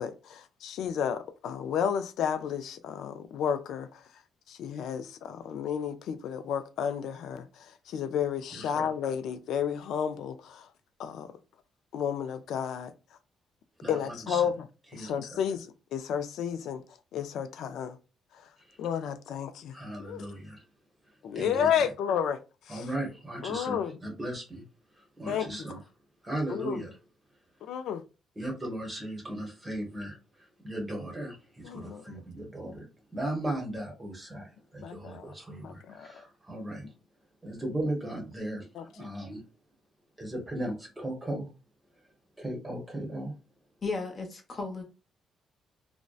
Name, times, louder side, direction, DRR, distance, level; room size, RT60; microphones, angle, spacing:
voice 1, 0.0-4.0 4.5-10.7 11.0-11.3 11.9-12.9 13.9-14.7 14.9-16.8 17.1-18.0 18.8-20.3 21.2-22.4 22.7-22.9 23.4-24.0 25.3-25.7 26.5-26.8 27.6-28.0 31.6-32.0 34.8-35.3 35.6-36.1 38.7-39.1, left 8 dB, 80° left, 0.3 m, -32 dB
voice 2, 8.5-8.9 13.8-14.4 14.9-15.4 19.7-20.6 21.3-21.9 22.7-24.6 25.2-25.8 26.2-27.0 28.4-32.9 33.1-36.9 37.4-39.4 40.2-41.5 42.4-43.3, right 1 dB, 20° right, 0.8 m, -37 dB
voice 3, 43.8-44.8, left 3 dB, 40° left, 0.7 m, -34 dB
2.6 x 2.1 x 2.3 m
cardioid pair, 90°, 0 cm